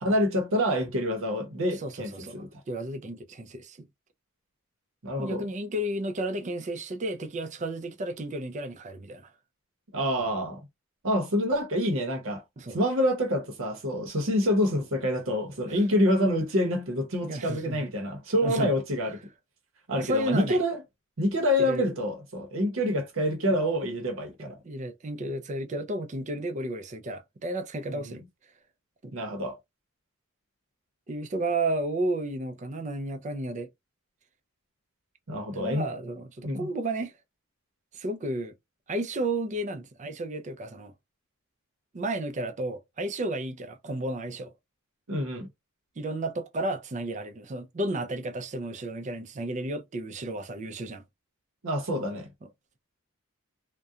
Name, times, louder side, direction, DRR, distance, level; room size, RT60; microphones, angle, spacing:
voice 1, 0.0-2.5 5.0-5.5 9.9-10.6 11.0-12.4 12.7-19.2 19.9-20.8 21.2-24.6 27.9-28.1 29.1-29.6 35.3-35.9 36.4-36.7 45.1-45.5 51.6-52.3, equal, 65° right, 0.8 m, -27 dB
voice 2, 1.8-3.9 5.2-9.3 12.6-12.8 15.7-15.8 17.2-17.9 18.4-18.7 19.9-20.6 21.6-21.8 24.4-28.2 31.1-33.7 35.5-37.1 37.9-38.5 38.9-40.9 41.9-44.5 46.0-51.0 52.4-52.5, right 1 dB, 35° right, 0.4 m, -32 dB
2.4 x 2.2 x 2.7 m
head